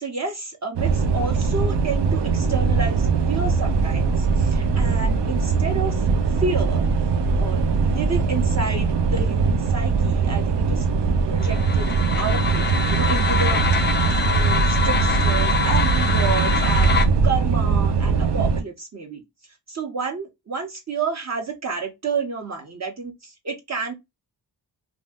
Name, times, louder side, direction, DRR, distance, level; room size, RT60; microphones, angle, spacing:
voice 1, 0.0-6.0 6.4-6.8 7.4-10.9 11.3-13.6 14.0-17.0 17.2-19.2 19.7-23.9, right 4 dB, 40° right, 0.8 m, -30 dB
sound 1, 0.8-18.6, right 5 dB, 90° right, 0.6 m, -21 dB
sound 2, 11.4-17.1, left 6 dB, 30° left, 0.4 m, -25 dB
2.6 x 2.1 x 3.4 m
wide cardioid pair, 125°, 40 cm